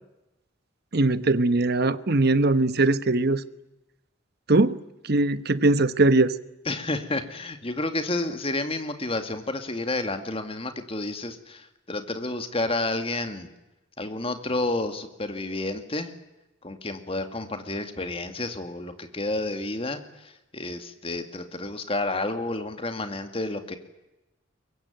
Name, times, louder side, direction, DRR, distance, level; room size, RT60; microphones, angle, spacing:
voice 1, 0.9-3.4 4.5-4.8 5.0-6.3, right 2 dB, 50° right, 1.1 m, -21 dB
voice 2, 6.7-13.5 14.0-16.1 16.6-23.8, left 2 dB, 30° left, 2.2 m, -30 dB
23.5 x 22.5 x 9.3 m
head